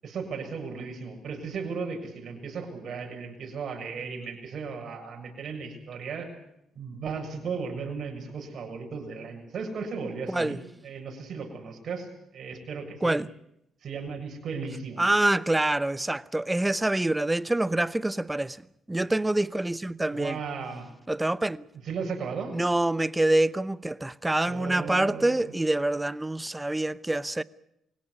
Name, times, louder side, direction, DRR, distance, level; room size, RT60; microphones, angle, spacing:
voice 1, 0.0-6.3 6.7-13.2 13.8-15.1 20.1-20.9 21.8-22.6 24.4-25.5, right 5 dB, 60° right, 6.9 m, -36 dB
voice 2, 15.0-18.6 18.9-20.4 21.1-21.6 22.5-27.4, right 1 dB, 10° right, 0.8 m, -26 dB
23.0 x 17.0 x 9.8 m
cardioid pair, 90°, 0 cm